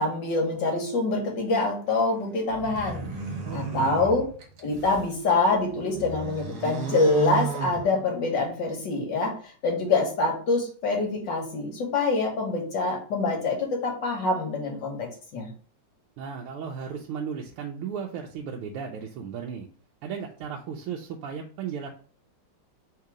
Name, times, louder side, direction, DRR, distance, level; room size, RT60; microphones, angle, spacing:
voice 1, 0.0-3.0 3.5-4.2 4.6-15.5, left 3 dB, 60° left, 0 dB, 1.6 m, -25 dB
sound 1, 2.5-5.1 5.6-8.4, right 5 dB, 55° right, 1.3 m, -34 dB
voice 2, 3.4-3.9 16.2-19.7 20.0-21.9, right 7 dB, 90° right, 0 dB, 1.5 m, -35 dB
3.8 x 2.9 x 4.8 m, 0.43 s
omnidirectional pair, 2.4 m